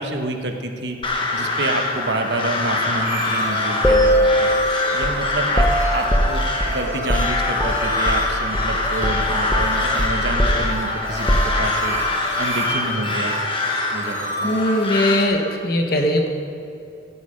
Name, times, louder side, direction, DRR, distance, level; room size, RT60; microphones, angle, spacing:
voice 1, 0.0-5.7 5.9-12.0 12.4-13.4 13.9-14.5, right 2 dB, 65° right, 4 dB, 1.3 m, -28 dB
Crow, 1.0-15.2, left 2 dB, 25° left, 1.4 m, -24 dB
sound 1, 2.9-15.2, equal, 15° right, 2.7 m, -31 dB
sound 2, 3.8-8.3 8.5-8.8 9.0-12.0, equal, 10° left, 1.0 m, -21 dB
voice 2, 14.4-16.3, left 1 dB, 55° left, 4 dB, 1.5 m, -20 dB
15.5 x 10.0 x 5.3 m, 2.6 s
head